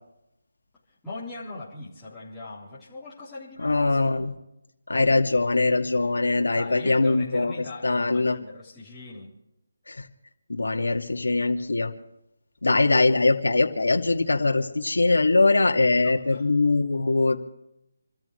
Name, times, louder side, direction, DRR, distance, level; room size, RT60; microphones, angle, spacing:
voice 1, 0.9-4.3 6.5-9.3 16.0-16.5, left 2 dB, 5° left, -15 dB, 3.8 m, -40 dB
voice 2, 3.6-4.3 4.9-7.5 7.8-8.4 9.9-10.1 10.5-11.9 12.6-17.4, left 3 dB, 90° left, 3 dB, 2.3 m, -22 dB
28.5 x 14.0 x 3.2 m, 0.85 s
figure-of-eight pair, 165°, 0 cm